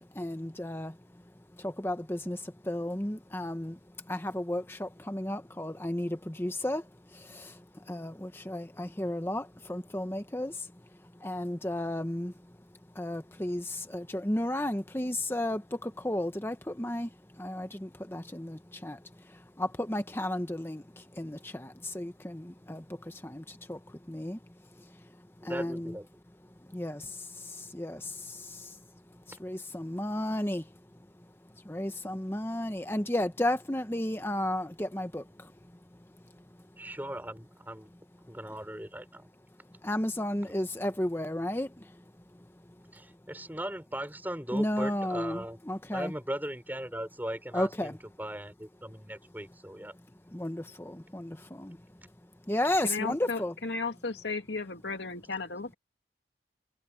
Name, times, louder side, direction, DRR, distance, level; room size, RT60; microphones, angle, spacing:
voice 1, 0.1-1.0 1.6-3.8 4.1-10.7 11.2-12.3 12.9-17.1 17.4-24.4 24.8-25.0 25.4-25.9 26.7-28.8 29.3-30.7 31.6-35.5 39.8-42.0 44.5-46.1 47.5-48.0 50.3-51.8 52.5-53.5, left 1 dB, 15° left, 1.0 m, -33 dB
voice 2, 25.4-26.1 36.8-37.9 38.3-39.3 42.9-45.6 45.9-50.0, right 1 dB, 10° right, 5.7 m, -38 dB
voice 3, 52.8-55.8, left 4 dB, 85° left, 2.3 m, -35 dB
head